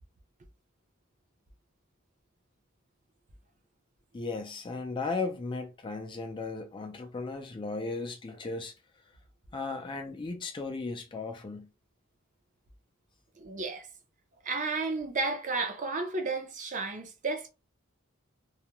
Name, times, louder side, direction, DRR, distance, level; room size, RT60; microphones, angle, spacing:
voice 1, 4.1-8.7 9.5-11.7, left 3 dB, 25° left, 0.4 m, -36 dB
voice 2, 13.4-13.9 14.4-17.5, right 3 dB, 40° right, 0.5 m, -32 dB
2.3 x 2.1 x 2.9 m
head